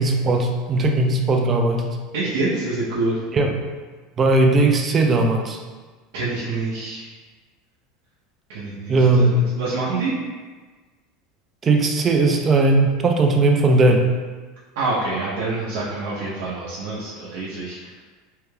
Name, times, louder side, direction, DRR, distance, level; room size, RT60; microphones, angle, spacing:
voice 1, 0.0-2.0 3.3-3.5 4.2-5.6 8.9-9.4 11.6-14.1, right 2 dB, 25° right, 3 dB, 0.4 m, -18 dB
voice 2, 2.1-3.2 6.1-7.1 8.5-9.2 9.6-10.1 14.8-18.0, right 3 dB, 80° right, -8 dB, 0.7 m, -26 dB
3.2 x 2.3 x 3.2 m, 1.4 s
supercardioid pair, 130°, 0 cm